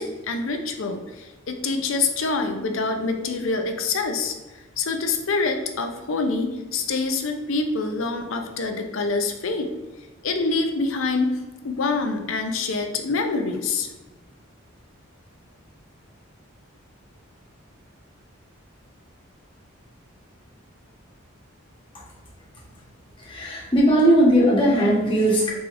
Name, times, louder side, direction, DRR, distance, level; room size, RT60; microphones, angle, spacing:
voice 1, 0.0-4.4 4.8-9.7 10.2-13.9, left 3 dB, 70° left, 5 dB, 0.5 m, -26 dB
voice 2, 23.2-25.5, right 1 dB, 25° left, -5 dB, 1.1 m, -18 dB
4.9 x 3.6 x 2.5 m, 1.2 s
head